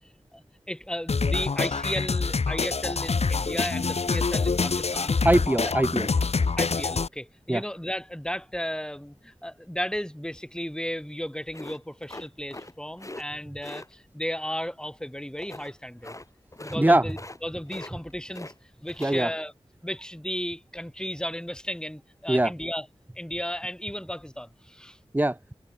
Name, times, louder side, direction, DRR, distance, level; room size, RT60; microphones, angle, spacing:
voice 1, 0.3-5.2 5.6-5.7 6.6-16.2 16.6-19.5 19.8-22.9 23.1-25.0, equal, 5° left, 5.0 m, -34 dB
sound 1, 1.1-7.1, left 4 dB, 85° left, 1.3 m, -26 dB
voice 2, 5.2-6.1 7.5-7.6 16.8-17.0 19.0-19.3 22.3-22.5 25.1-25.5, right 1 dB, 15° right, 1.1 m, -22 dB
sound 2, 11.5-12.7 13.0-13.2 13.6-13.9 15.4-15.7 16.0-16.3 16.5-16.8 17.1-17.4 17.7-18.5 18.9-19.2, left 2 dB, 30° left, 3.0 m, -41 dB
wide cardioid pair, 55°, 11 cm